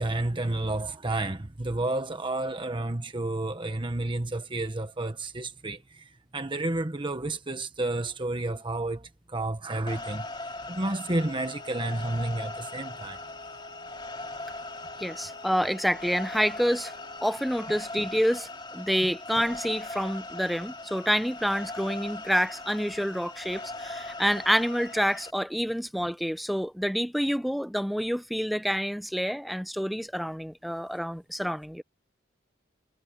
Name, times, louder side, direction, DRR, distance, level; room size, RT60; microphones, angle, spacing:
voice 1, 0.0-13.2, right 2 dB, 25° right, 1.3 m, -31 dB
sound 1, 9.9-25.3, left 2 dB, 25° left, 2.6 m, -40 dB
Wind instrument woodwind instrument, 11.1-17.7, left 2 dB, 65° left, 5.2 m, -50 dB
voice 2, 15.0-16.9 17.2-31.8, equal, ahead, 0.7 m, -28 dB
head